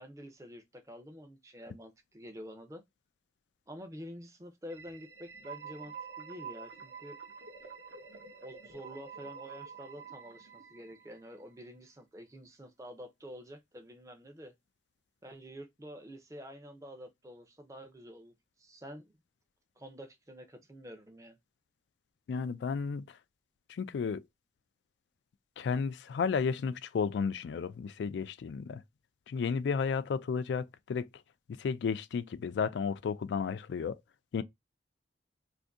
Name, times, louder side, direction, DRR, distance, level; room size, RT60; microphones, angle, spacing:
voice 1, 0.0-2.8 3.7-7.2 8.4-14.5 15.2-18.3 18.6-19.1 19.8-21.4, equal, 15° right, 0.5 m, -48 dB
sound 1, 4.7-11.4, right 6 dB, 80° right, 0.8 m, -48 dB
voice 2, 22.3-23.1 23.7-24.2 25.6-28.8 29.3-31.1 31.6-34.0 34.3-34.4, left 5 dB, 80° left, 0.3 m, -33 dB
2.6 x 2.6 x 3.5 m
head